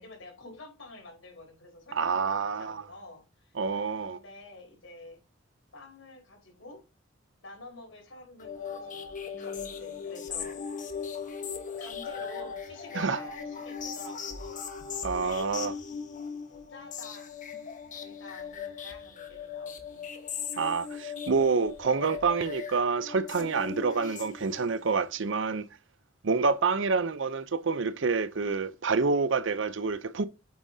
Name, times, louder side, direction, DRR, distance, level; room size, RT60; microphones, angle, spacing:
voice 1, 0.0-3.5 4.0-5.2 5.7-6.8 7.4-10.6 11.8-14.6 15.1-15.7 16.5-17.3 17.9-20.1, left 2 dB, 85° left, 4.5 m, -49 dB
voice 2, 1.9-2.8 3.6-4.2 12.9-13.2 15.0-15.7 20.6-25.6 26.2-30.3, right 4 dB, 70° right, 0.6 m, -27 dB
sound 1, 8.4-24.8, left 6 dB, 40° left, 1.3 m, -39 dB
8.6 x 8.5 x 2.8 m
head